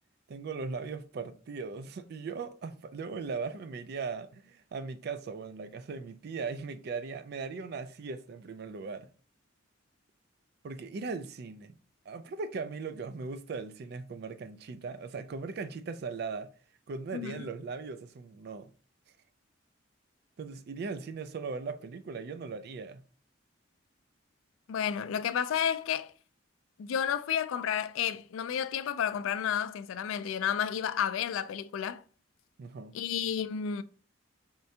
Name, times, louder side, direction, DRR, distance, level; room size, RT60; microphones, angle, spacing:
voice 1, 0.3-9.1 10.6-11.8 12.1-16.5 16.9-18.7 20.4-23.0 32.6-32.9, right 4 dB, 55° right, 0.3 m, -38 dB
voice 2, 17.1-17.5 24.7-26.1 26.8-32.0 32.9-33.8, left 8 dB, 90° left, 0.3 m, -31 dB
4.4 x 3.3 x 2.7 m
head